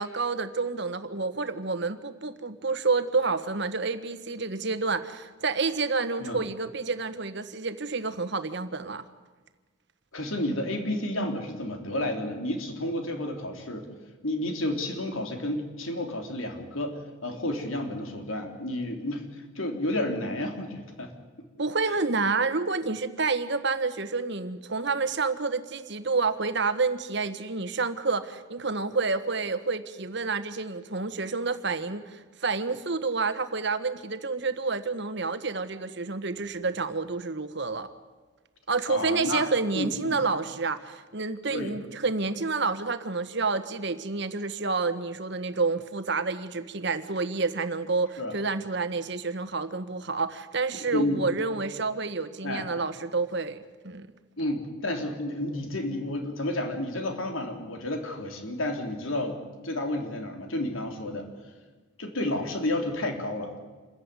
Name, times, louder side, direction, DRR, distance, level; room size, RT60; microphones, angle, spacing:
voice 1, 0.0-9.0 21.6-37.9 38.7-54.1, right 4 dB, 55° right, 11 dB, 1.4 m, -29 dB
voice 2, 10.1-13.9 14.2-19.2 19.5-21.1 21.9-22.0 38.9-39.5 39.7-40.2 41.5-41.7 48.2-48.3 50.7-51.2 52.4-52.7 54.4-59.4 59.6-61.3 62.0-63.5, left 1 dB, 80° left, 4 dB, 3.4 m, -31 dB
27.0 x 14.5 x 9.7 m, 1.3 s
head